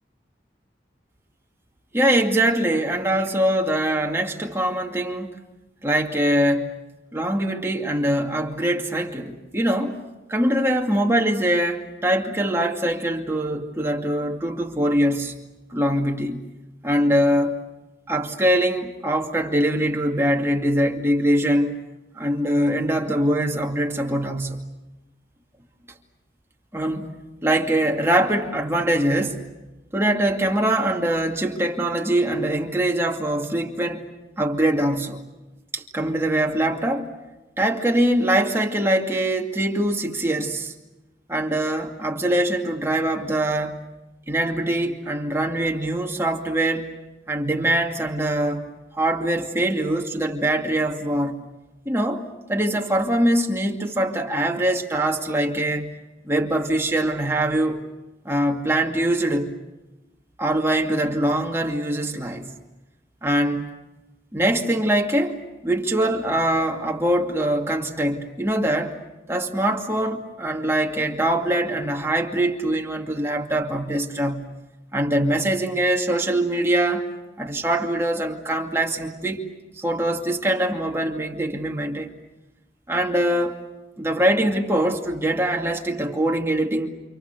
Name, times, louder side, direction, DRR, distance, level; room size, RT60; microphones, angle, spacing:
voice 1, 1.9-5.3 5.8-6.7 7.1-10.0 10.3-15.3 15.7-16.4 16.8-17.6 18.1-21.8 22.2-24.6 26.7-27.1 27.4-29.4 29.9-34.1 34.4-35.2 35.7-37.1 37.6-40.7 41.3-43.9 44.3-46.9 47.3-48.6 48.9-51.4 51.9-55.9 56.2-57.8 58.2-59.5 60.4-62.5 63.2-63.7 64.3-65.4 65.6-69.0 69.3-74.5 74.9-77.1 77.4-79.4 79.8-82.1 82.9-83.6 84.0-86.9, right 1 dB, 15° right, 2.3 m, -23 dB
29.0 x 28.0 x 6.7 m
head